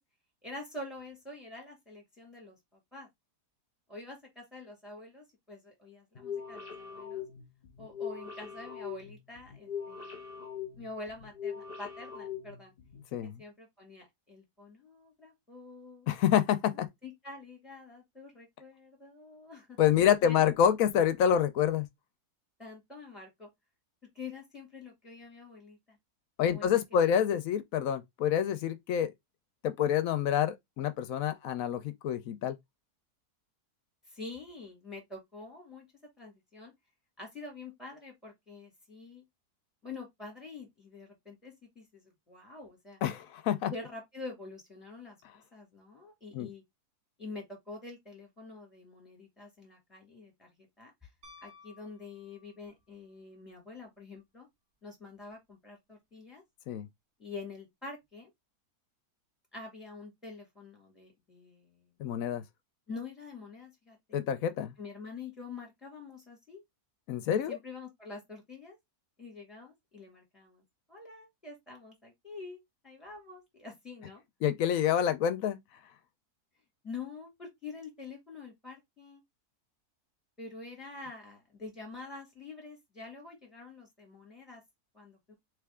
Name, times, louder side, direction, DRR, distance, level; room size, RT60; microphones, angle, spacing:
voice 1, 0.4-3.1 3.9-7.2 7.8-10.2 10.8-12.7 13.2-16.1 16.7-19.8 20.2-20.5 22.6-23.5 24.1-26.0 26.5-27.1 34.1-35.9 36.2-36.7 37.2-39.2 39.8-43.0 43.7-46.6 47.2-50.9 51.4-54.5 54.8-56.4 57.2-58.3 59.5-61.9 62.9-64.2 64.8-66.6 67.5-68.8 69.2-70.6 70.9-74.2 76.8-79.2 80.4-84.6 84.9-85.3, left 3 dB, ahead, 1.9 m, -46 dB
sound 1, 6.2-13.0, left 7 dB, 40° left, 1.0 m, -42 dB
voice 2, 16.1-16.9 19.8-21.9 26.4-29.1 29.6-32.6 43.0-43.7 46.3-46.5 56.7-56.9 62.0-62.4 64.1-64.7 67.1-67.6 74.4-75.6, left 9 dB, 70° left, 0.9 m, -27 dB
Piano, 51.2-52.8 55.2-55.3, left 4 dB, 45° right, 1.1 m, -56 dB
3.4 x 3.3 x 3.5 m
omnidirectional pair, 1.7 m